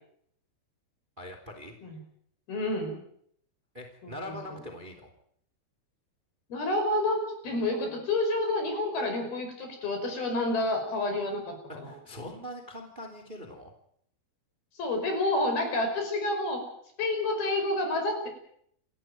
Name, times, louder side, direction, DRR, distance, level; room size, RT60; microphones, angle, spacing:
voice 1, 1.2-1.7 3.7-5.1 11.7-13.7, left 1 dB, 15° right, 5 dB, 2.9 m, -42 dB
voice 2, 2.5-3.0 4.0-4.4 6.5-11.5 11.8-11.9 14.8-16.6 17.0-18.3, left 2 dB, 60° left, 5 dB, 7.4 m, -29 dB
29.0 x 13.0 x 9.2 m, 0.68 s
omnidirectional pair, 4.9 m